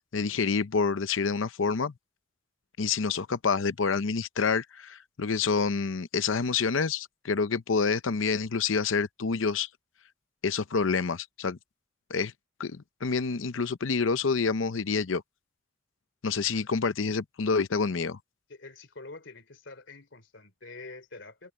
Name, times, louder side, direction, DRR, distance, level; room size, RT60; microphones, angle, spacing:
voice 1, 0.1-1.9 2.8-9.7 10.4-11.6 12.1-12.3 12.6-15.2 16.2-18.2, left 5 dB, 85° left, 0.7 m, -27 dB
voice 2, 18.5-21.5, left 3 dB, 65° left, 3.3 m, -46 dB
head